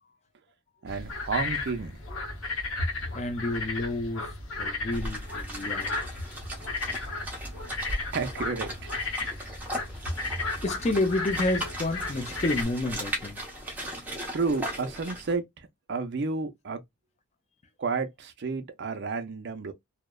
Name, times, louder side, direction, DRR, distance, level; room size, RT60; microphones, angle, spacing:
voice 1, 0.8-2.0 7.1-7.2 8.1-9.0 14.3-16.8 17.8-19.7, right 4 dB, 50° right, 0.5 m, -31 dB
sound 1, 0.9-12.6, left 3 dB, 60° left, 0.8 m, -34 dB
voice 2, 3.1-4.3 4.6-6.0 10.6-13.4, left 2 dB, 30° left, 0.4 m, -29 dB
sound 2, 4.9-15.3, equal, 10° right, 0.8 m, -38 dB
2.8 x 2.0 x 2.2 m
head